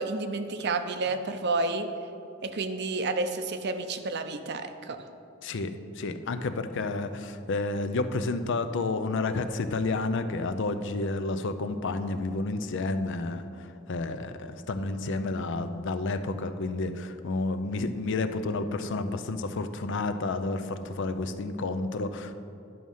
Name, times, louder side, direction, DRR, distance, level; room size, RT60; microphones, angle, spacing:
voice 1, 0.0-1.9 2.4-5.0, right 3 dB, 55° right, 9 dB, 0.6 m, -30 dB
voice 2, 5.4-22.3, left 3 dB, 60° left, 10 dB, 0.5 m, -30 dB
11.0 x 6.3 x 5.5 m, 2.6 s
head